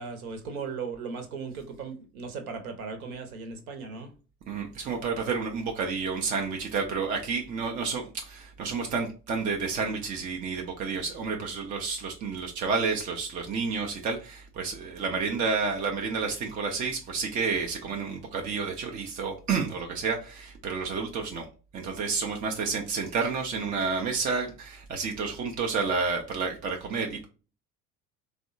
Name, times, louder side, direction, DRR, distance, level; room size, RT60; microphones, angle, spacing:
voice 1, 0.0-4.1, right 5 dB, 65° right, 0.9 m, -37 dB
voice 2, 4.5-21.5 21.7-27.2, right 5 dB, 20° right, 0.3 m, -30 dB
3.3 x 2.1 x 2.5 m
figure-of-eight pair, 65°, 47 cm